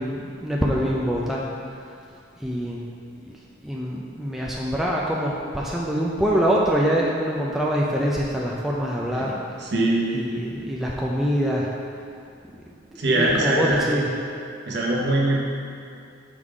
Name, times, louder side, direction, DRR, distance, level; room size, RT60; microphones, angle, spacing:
voice 1, 0.0-1.4 2.4-2.9 3.2-3.3 3.6-9.4 10.1-11.7 13.1-14.1, equal, ahead, -4 dB, 0.3 m, -24 dB
voice 2, 9.6-10.3 13.0-14.0 14.7-15.4, right 1 dB, 55° right, -3 dB, 0.9 m, -22 dB
6.3 x 3.7 x 4.8 m, 2.4 s
head